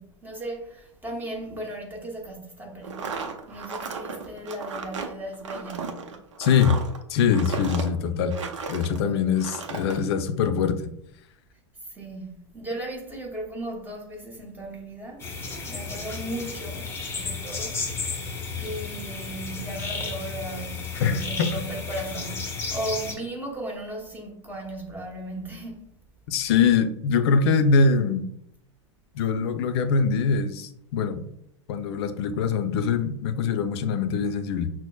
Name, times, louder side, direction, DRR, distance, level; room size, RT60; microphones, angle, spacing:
voice 1, 0.0-6.2 8.9-9.5 9.9-10.0 11.8-15.3 15.7-17.8 18.6-25.8, right 1 dB, 10° right, 1.0 m, -36 dB
sound 1, 2.8-9.0 9.4-10.0, right 4 dB, 70° right, 0.6 m, -35 dB
voice 2, 6.4-6.8 7.1-8.4 8.7-10.9 21.0-21.5 26.3-28.3 29.1-31.2 31.7-34.7, left 5 dB, 55° left, 0.5 m, -23 dB
sound 2, 15.2-23.1, left 4 dB, 15° left, 0.8 m, -33 dB
5.9 x 2.0 x 2.3 m
figure-of-eight pair, 95°, 16 cm